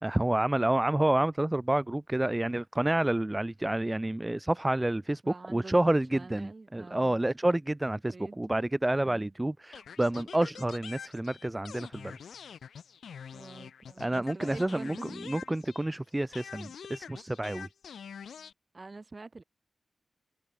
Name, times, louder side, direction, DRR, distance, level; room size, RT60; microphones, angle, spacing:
voice 1, 0.0-12.2 14.0-17.7, right 1 dB, 10° right, 1.0 m, -29 dB
voice 2, 5.2-5.7 6.1-7.2 8.1-8.4 9.0-9.3 13.3-15.7 18.7-19.4, right 3 dB, 30° right, 5.0 m, -46 dB
sound 1, 9.7-16.0 16.3-18.5, left 7 dB, 85° left, 6.7 m, -46 dB
wide cardioid pair, 120°, 0 cm